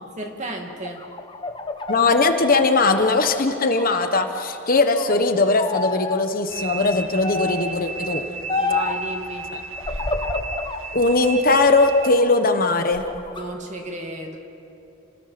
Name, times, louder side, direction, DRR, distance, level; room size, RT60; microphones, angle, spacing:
voice 1, 0.0-1.0 8.6-9.5 13.3-14.4, right 2 dB, 35° right, 2 dB, 2.5 m, -33 dB
sound 1, 0.7-3.9 4.3-5.2 5.6-6.2 7.2-7.7 8.5-9.0 9.8-10.8 11.3-12.3 12.7-13.4, left 3 dB, 20° left, 1.2 m, -29 dB
voice 2, 1.9-8.2 9.5-9.6 10.9-13.0, left 3 dB, 40° left, 6 dB, 1.2 m, -19 dB
sound 2, 6.5-12.1, right 4 dB, 70° right, 1.3 m, -34 dB
30.0 x 20.0 x 6.1 m, 2.9 s
head